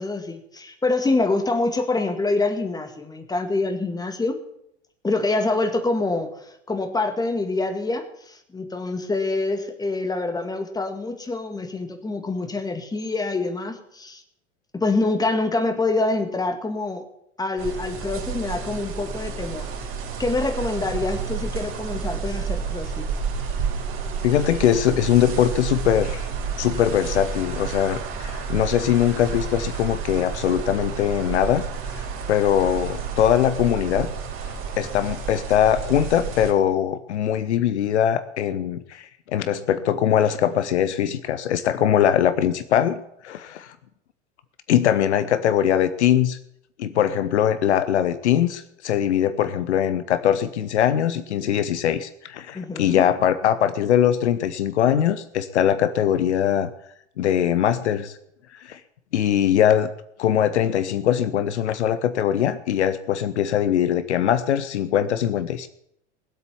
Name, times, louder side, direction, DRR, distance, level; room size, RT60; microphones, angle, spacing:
voice 1, 0.0-4.4 5.0-6.3 6.7-14.2 14.7-17.0 17.4-19.7 20.2-23.1 52.5-53.0, left 3 dB, 10° left, 7 dB, 2.0 m, -25 dB
sound 1, 17.6-36.5, right 6 dB, 35° right, 3.8 m, -30 dB
voice 2, 24.2-26.3 26.6-31.6 31.9-32.0 32.3-34.1 34.8-43.7 44.7-46.4 46.8-56.7 57.2-58.2 58.5-58.8 59.1-59.9 60.2-65.7, left 10 dB, 65° left, 13 dB, 0.9 m, -21 dB
19.5 x 8.2 x 7.1 m, 0.77 s
figure-of-eight pair, 80°, 37 cm